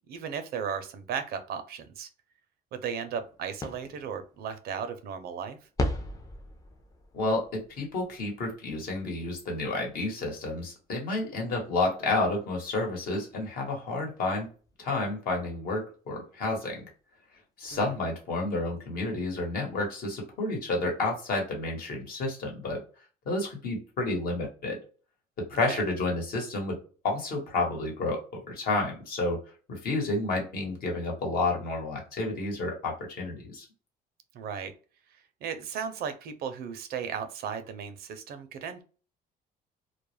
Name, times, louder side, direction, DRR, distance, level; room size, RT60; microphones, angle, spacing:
voice 1, 0.1-2.1 2.7-5.6 17.7-17.9 25.7-25.8 34.3-34.7 35.4-38.8, right 7 dB, 65° right, 9 dB, 0.5 m, -35 dB
sound 1, 3.2-15.6 16.8-16.9 17.3-17.4 17.6-18.8, left 1 dB, 20° left, 0.5 m, -41 dB
voice 2, 7.1-14.5 14.8-16.8 17.6-22.8 23.2-24.8 25.5-26.8 27.0-29.4 29.7-33.6, left 2 dB, 60° left, 0 dB, 1.1 m, -30 dB
2.3 x 2.0 x 3.1 m, 0.37 s
cardioid pair, 110°, 17 cm